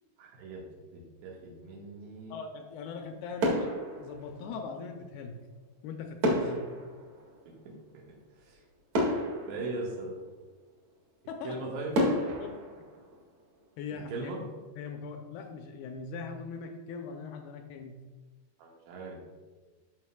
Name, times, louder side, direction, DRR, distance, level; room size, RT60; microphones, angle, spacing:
voice 1, 0.2-0.6 0.9-2.4 7.5-8.0 8.5-8.6 9.5-10.2 11.4-11.9 14.1-14.4 18.6-19.2, right 3 dB, 85° right, -2 dB, 3.8 m, -39 dB
voice 2, 2.3-3.7 4.0-5.4 5.8-6.7 11.3-11.6 12.4-12.5 13.8-14.3 14.8-18.0, left 5 dB, 80° left, 4 dB, 2.4 m, -40 dB
sound 1, 2.8-3.1 3.4-4.9 6.2-8.1 8.6-8.7 8.9-10.5 11.1-11.2 11.9-13.8 14.1-14.4, equal, 50° right, 2.5 m, -32 dB
13.5 x 6.1 x 2.3 m, 1.3 s
omnidirectional pair, 4.8 m